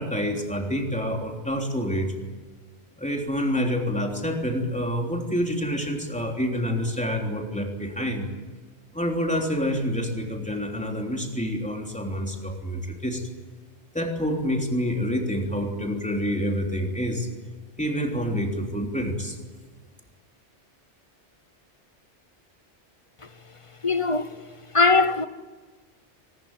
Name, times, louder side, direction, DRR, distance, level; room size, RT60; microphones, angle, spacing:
voice 1, 0.0-2.1 3.0-8.3 8.9-13.3 13.9-17.3 17.8-19.4, equal, 5° left, 3.4 m, -27 dB
voice 2, 23.8-24.4 24.7-25.3, left 3 dB, 30° left, 0.9 m, -20 dB
24.5 x 20.5 x 9.0 m
omnidirectional pair, 1.2 m